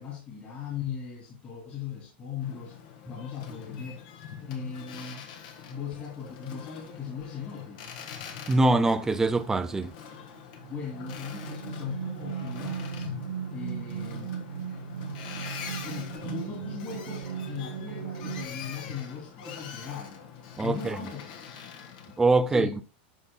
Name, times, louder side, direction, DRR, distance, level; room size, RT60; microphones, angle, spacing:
voice 1, 0.0-2.8 3.1-4.1 4.4-5.3 5.7-7.9 10.7-13.1 13.5-14.4 15.5-21.5 22.5-22.8, left 7 dB, 25° left, 2.6 m, -39 dB
Boat Water vehicle, 2.4-22.2, left 7 dB, 60° left, 1.5 m, -44 dB
voice 2, 8.5-9.9 20.6-21.0 22.2-22.8, right 2 dB, 10° right, 0.5 m, -23 dB
sound 1, 10.3-18.5, right 8 dB, 70° right, 0.8 m, -37 dB
11.0 x 5.7 x 2.2 m
supercardioid pair, 150°, 6 cm